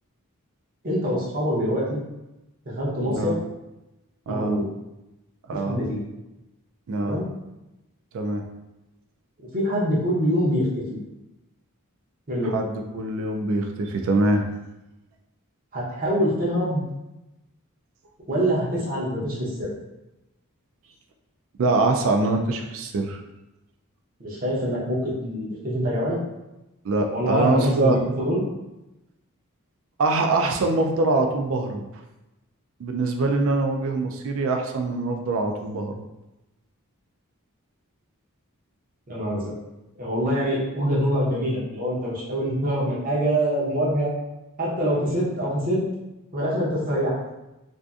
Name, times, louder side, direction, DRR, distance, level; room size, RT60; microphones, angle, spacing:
voice 1, 0.8-2.0 2.7-3.4 4.3-4.7 5.6-6.0 7.0-7.3 9.5-11.0 12.3-12.5 15.7-16.8 18.3-19.7 24.2-26.2 27.1-28.4 39.1-39.5 40.0-44.1 44.6-45.8 46.3-47.1, equal, 40° right, -5 dB, 0.7 m, -25 dB
voice 2, 4.3-4.6 5.5-5.8 6.9-7.2 8.1-8.4 12.4-14.5 21.6-23.2 26.8-28.1 30.0-31.9 32.8-35.9, right 2 dB, 60° right, 4 dB, 0.3 m, -24 dB
2.6 x 2.4 x 2.3 m, 0.98 s
head